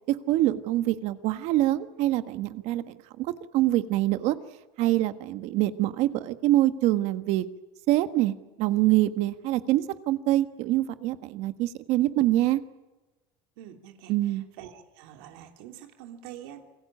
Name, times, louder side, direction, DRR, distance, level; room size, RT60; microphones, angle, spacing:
voice 1, 0.1-4.4 4.8-7.5 7.9-12.6 14.1-14.4, right 15 dB, 65° right, 10 dB, 1.5 m, -25 dB
voice 2, 13.6-16.7, right 10 dB, 90° right, 4 dB, 2.9 m, -46 dB
28.0 x 21.0 x 8.7 m, 1.1 s
cardioid pair, 135°, 12 cm